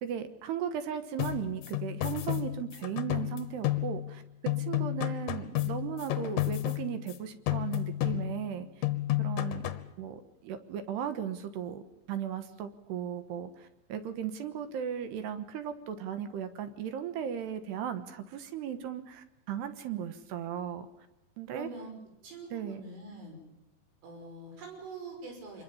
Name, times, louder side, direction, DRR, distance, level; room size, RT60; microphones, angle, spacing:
voice 1, 0.0-4.2 4.6-8.9 9.2-9.7 10.0-11.8 12.1-20.9 21.4-21.7 22.5-22.8, right 9 dB, 70° right, 10 dB, 3.0 m, -36 dB
sound 1, 1.2-4.2 4.5-7.2 7.5-8.5 8.8-9.9, left 15 dB, 70° left, 2.1 m, -32 dB
voice 2, 21.5-21.9 22.2-23.4 24.0-25.6, right 2 dB, 85° right, 3 dB, 8.3 m, -44 dB
26.5 x 22.0 x 7.2 m, 0.92 s
omnidirectional pair, 5.6 m